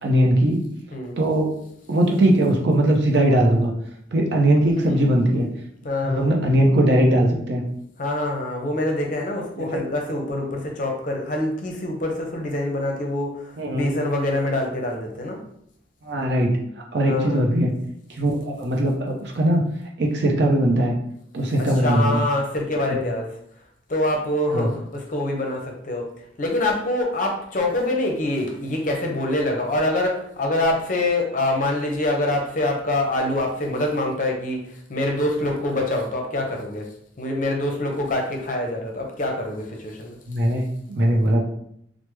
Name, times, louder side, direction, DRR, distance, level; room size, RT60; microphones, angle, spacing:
voice 1, 0.0-0.6 1.2-1.5 1.9-3.7 4.1-5.5 6.0-7.6 9.6-9.8 13.6-13.9 16.0-16.5 16.9-17.7 18.1-19.6 20.0-20.9 21.3-22.2 22.9-23.0 24.5-24.7 40.3-41.4, right 1 dB, 65° right, 1 dB, 0.6 m, -20 dB
voice 2, 5.8-6.4 8.0-15.4 17.0-17.5 21.6-23.3 23.9-26.1 26.4-36.9 37.2-40.2, left 1 dB, 45° left, 1 dB, 0.5 m, -25 dB
3.3 x 2.0 x 3.1 m, 0.71 s
head